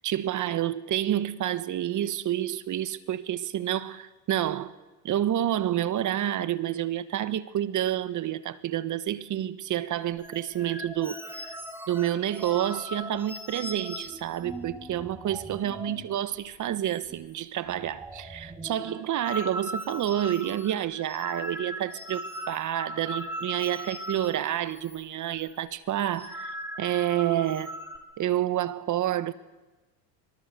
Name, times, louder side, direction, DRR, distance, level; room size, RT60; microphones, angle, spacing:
voice 1, 0.0-4.7 5.0-11.6 11.9-27.7 28.2-29.3, right 12 dB, 40° right, 1.5 m, -29 dB
sound 1, 10.2-16.1 16.4-16.6 16.8-17.4 17.7-25.0 25.3-25.5 26.0-28.0, equal, 5° right, 3.1 m, -39 dB
25.0 x 23.5 x 6.9 m
hypercardioid pair, 85°, 45 cm